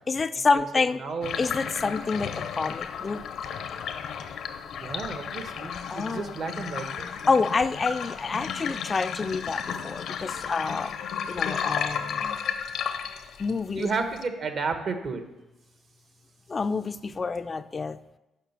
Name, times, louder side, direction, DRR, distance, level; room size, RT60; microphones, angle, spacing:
voice 1, 0.1-1.0 1.4-3.2 5.9-6.2 7.3-10.9 11.3-12.4 13.4-13.9 16.5-18.2, left 4 dB, 35° left, 11 dB, 0.3 m, -28 dB
voice 2, 1.0-1.4 4.8-7.1 12.8-13.1 13.7-15.2, right 4 dB, 60° right, 7 dB, 1.2 m, -32 dB
sound 1, 1.2-14.2, left 7 dB, 75° left, 0.7 m, -33 dB
7.4 x 5.8 x 7.0 m, 1.0 s
cardioid pair, 90°, 0 cm